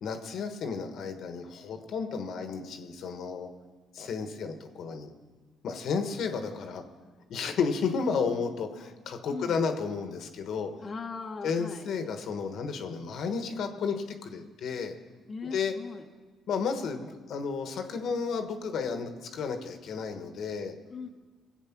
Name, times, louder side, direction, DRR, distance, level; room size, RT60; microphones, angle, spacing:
voice 1, 0.0-3.5 3.9-5.1 5.6-6.8 7.3-10.7 11.4-14.9 15.4-15.7 16.5-20.7, left 5 dB, 70° left, 6 dB, 1.3 m, -32 dB
voice 2, 9.3-9.6 10.8-11.9 15.3-16.0 20.9-21.1, left 4 dB, 35° left, 2 dB, 1.0 m, -39 dB
20.5 x 8.1 x 6.0 m, 1.3 s
cardioid pair, 85°, 0 cm